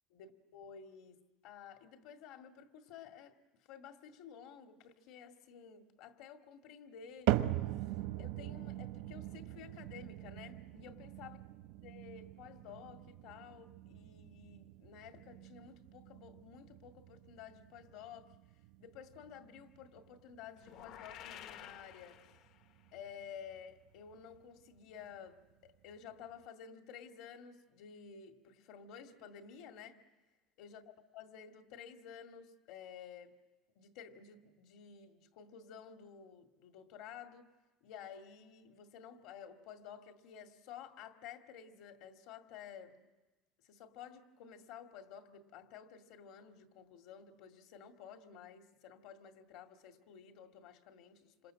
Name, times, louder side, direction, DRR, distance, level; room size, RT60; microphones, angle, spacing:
voice 1, 0.1-3.4 3.7-7.3 7.6-11.4 11.8-18.3 18.8-22.2 22.9-30.0 30.6-30.8 31.1-33.3 33.8-37.5 37.8-43.1 43.6-51.5, left 7 dB, 70° left, 2.1 m, -53 dB
sound 1, 7.3-23.6 23.9-24.4 25.0-25.1 25.9-26.0, right 15 dB, 80° right, 1.0 m, -41 dB
sound 2, 20.6-22.8, left 10 dB, 50° left, 0.8 m, -52 dB
27.0 x 26.5 x 7.7 m
cardioid pair, 160°, 0 cm